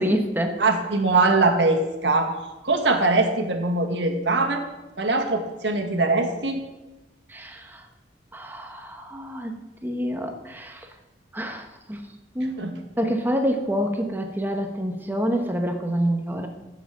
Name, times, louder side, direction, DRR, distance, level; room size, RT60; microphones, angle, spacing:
voice 1, 0.0-0.6 7.3-7.8 8.3-9.5 9.8-10.9 11.3-12.0 12.3-12.6 13.0-16.5, equal, 10° right, 4 dB, 1.2 m, -27 dB
voice 2, 0.6-2.3 2.6-4.6 5.0-6.6 12.6-12.7, right 3 dB, 85° right, 4 dB, 1.7 m, -22 dB
11.0 x 7.7 x 7.5 m, 1.1 s
head